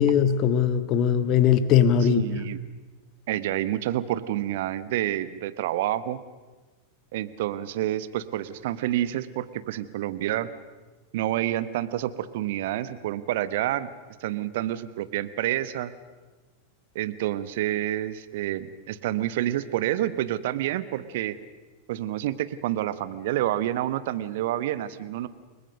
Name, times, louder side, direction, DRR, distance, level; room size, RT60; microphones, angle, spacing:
voice 1, 0.0-2.2, left 8 dB, 35° left, 12 dB, 1.5 m, -20 dB
voice 2, 2.1-2.6 3.3-6.2 7.1-10.5 11.1-13.9 14.2-15.9 16.9-21.4 21.9-25.3, right 13 dB, 55° right, 14 dB, 1.1 m, -28 dB
29.5 x 19.5 x 6.6 m, 1.3 s
figure-of-eight pair, 90°, 0 cm